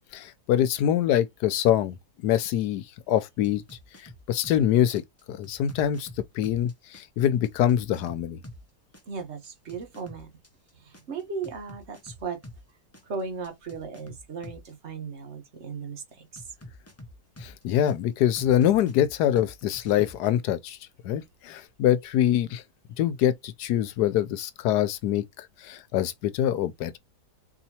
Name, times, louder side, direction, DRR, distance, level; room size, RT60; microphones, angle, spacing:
voice 1, 0.1-2.0 2.2-3.6 4.3-5.0 5.3-6.1 6.3-8.4 17.4-20.8 21.0-22.6 23.0-27.0, left 11 dB, 85° left, 1.2 m, -24 dB
sound 1, 3.4-4.6 4.9-8.6 8.9-12.6 12.9-14.7 16.4-17.9 18.4-20.3, left 1 dB, 25° left, 0.3 m, -46 dB
voice 2, 9.1-10.3 10.8-12.4 13.0-16.4, right 5 dB, 45° right, 1.4 m, -36 dB
4.6 x 2.9 x 2.8 m
omnidirectional pair, 1.7 m